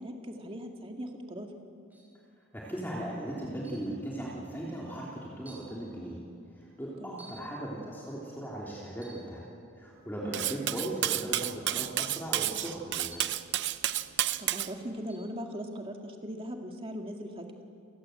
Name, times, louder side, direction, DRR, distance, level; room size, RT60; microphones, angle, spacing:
voice 1, 0.0-1.5 7.0-7.3 10.2-10.4 14.4-17.5, equal, 25° right, 3 dB, 2.1 m, -39 dB
sound 1, 1.9-2.2 3.6-4.0 4.8-4.9 5.5-5.8 7.2-7.6 8.9-9.3 10.9-11.2 13.1-13.5 15.1-15.3, right 1 dB, 10° right, 4.5 m, -53 dB
voice 2, 2.5-6.2 6.5-9.4 9.8-13.2, right 1 dB, 10° left, -5 dB, 3.2 m, -38 dB
Cutlery silverware, 10.3-14.7, right 13 dB, 55° right, 0.6 m, -31 dB
29.0 x 18.5 x 7.9 m, 2.5 s
head